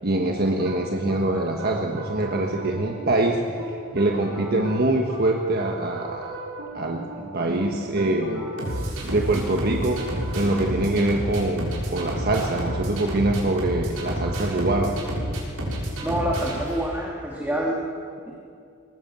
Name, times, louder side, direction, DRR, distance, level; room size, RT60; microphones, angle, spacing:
voice 1, 0.0-6.4 6.7-8.5 9.0-14.9, right 2 dB, 45° right, 1 dB, 1.5 m, -24 dB
sound 1, 0.6-17.2, equal, 75° right, 6.0 m, -32 dB
voice 2, 16.0-17.8 18.3-18.4, right 1 dB, 10° right, -3 dB, 2.3 m, -27 dB
22.0 x 20.0 x 7.6 m, 2.4 s
head